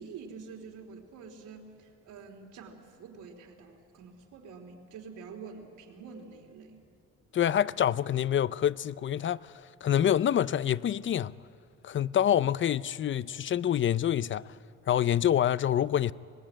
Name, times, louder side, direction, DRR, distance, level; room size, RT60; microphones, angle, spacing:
voice 1, 0.0-6.8, right 5 dB, 85° right, 3.3 m, -47 dB
voice 2, 7.3-9.5 9.8-11.3 11.8-14.5 14.9-16.1, left 10 dB, 40° left, 0.5 m, -26 dB
24.0 x 20.0 x 8.8 m
cardioid pair, 90°, 30 cm